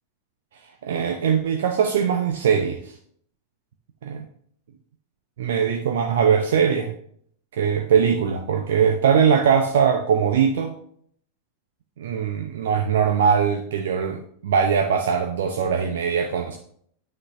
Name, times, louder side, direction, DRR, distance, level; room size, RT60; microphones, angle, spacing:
voice 1, 0.8-2.9 4.0-4.2 5.4-6.9 7.5-10.7 12.0-16.6, right 7 dB, 60° right, 5 dB, 0.8 m, -21 dB
9.6 x 8.8 x 2.6 m, 0.64 s
figure-of-eight pair, 90°, 0 cm